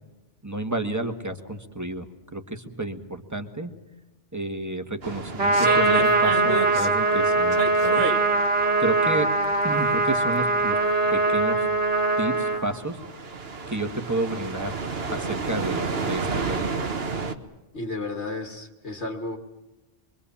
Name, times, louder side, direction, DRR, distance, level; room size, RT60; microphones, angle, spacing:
voice 1, 0.4-2.1 2.3-3.7 4.3-8.1 8.5-9.3 9.6-10.8 11.1-11.7 12.2-13.0 13.7-14.7 15.1-16.7, right 2 dB, 15° right, 7 dB, 1.7 m, -31 dB
sound 1, 5.0-17.3, right 4 dB, 55° right, 1.6 m, -32 dB
Trumpet, 5.4-12.6, right 3 dB, 85° right, 3.3 m, -22 dB
voice 2, 17.7-19.4, left 2 dB, 70° left, 3 dB, 2.3 m, -33 dB
26.0 x 23.5 x 7.2 m, 1.1 s
omnidirectional pair, 1.2 m